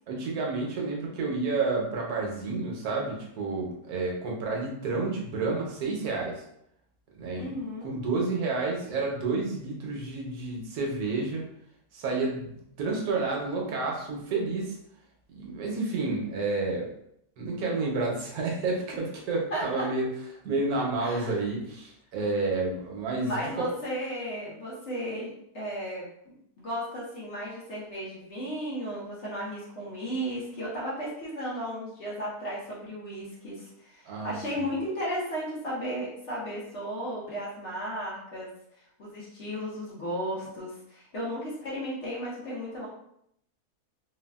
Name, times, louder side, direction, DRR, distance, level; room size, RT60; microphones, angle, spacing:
voice 1, 0.1-6.4 7.1-7.5 7.8-11.4 11.9-14.8 15.3-16.9 17.4-20.1 20.4-23.7 34.1-34.7, right 3 dB, 75° right, -1 dB, 1.1 m, -30 dB
voice 2, 7.4-7.9 19.5-19.9 20.8-21.4 23.2-26.1 26.6-42.9, equal, 55° left, -6 dB, 1.0 m, -35 dB
3.3 x 2.2 x 2.2 m, 0.73 s
omnidirectional pair, 1.7 m